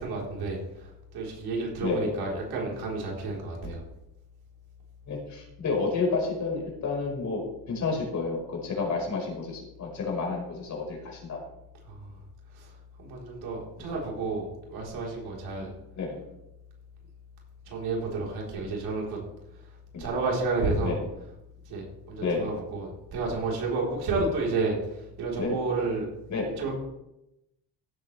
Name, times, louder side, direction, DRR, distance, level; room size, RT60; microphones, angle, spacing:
voice 1, 0.0-3.8 11.9-12.1 12.6-12.7 13.0-15.7 17.7-19.2 20.0-21.0 21.7-26.1 26.6-26.8, right 3 dB, 80° right, -2 dB, 4.1 m, -31 dB
voice 2, 1.8-2.2 3.6-3.7 5.1-7.4 7.7-11.4 15.6-16.2 19.9-20.1 20.8-21.0 22.2-22.5 25.4-25.6 26.3-26.6, left 4 dB, 50° left, -1 dB, 4.9 m, -30 dB
16.0 x 8.4 x 3.4 m, 0.89 s
cardioid pair, 115°, 37 cm